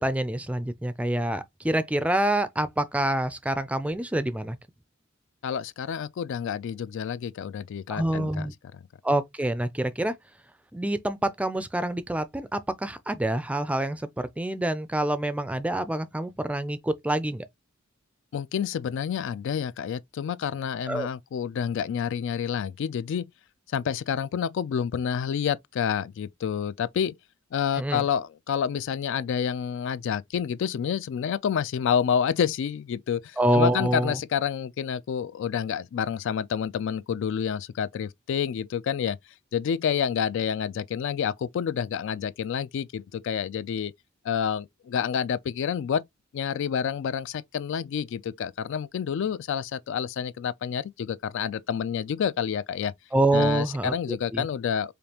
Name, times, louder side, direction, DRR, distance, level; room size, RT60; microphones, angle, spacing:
voice 1, 0.0-4.6 7.9-8.5 9.0-10.1 10.7-17.5 20.9-21.1 27.8-28.0 33.4-34.2 53.1-54.5, right 1 dB, 5° right, 0.4 m, -26 dB
voice 2, 5.4-8.3 8.7-8.8 18.3-23.2 23.7-27.1 27.5-39.2 39.5-43.9 44.2-46.1 46.3-52.9 53.3-54.9, left 7 dB, 65° left, 0.3 m, -28 dB
5.1 x 2.3 x 2.9 m
head